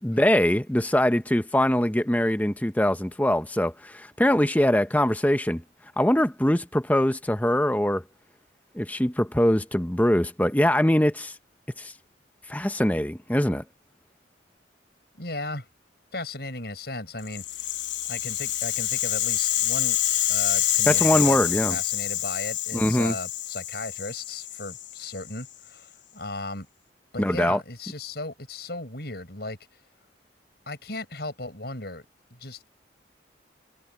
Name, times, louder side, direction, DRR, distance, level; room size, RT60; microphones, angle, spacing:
voice 1, 0.0-5.6 6.0-8.0 8.7-11.3 11.8-11.9 12.5-13.6 20.9-21.8 22.7-23.2 27.2-27.6, left 1 dB, 10° left, 0.8 m, -22 dB
voice 2, 15.1-15.7 16.1-17.7 18.1-20.0 20.3-26.7 27.1-29.6 30.7-32.1 32.3-32.6, left 2 dB, 55° left, 7.4 m, -36 dB
Rattle (instrument), 17.3-25.5, left 13 dB, 80° left, 1.0 m, -27 dB
head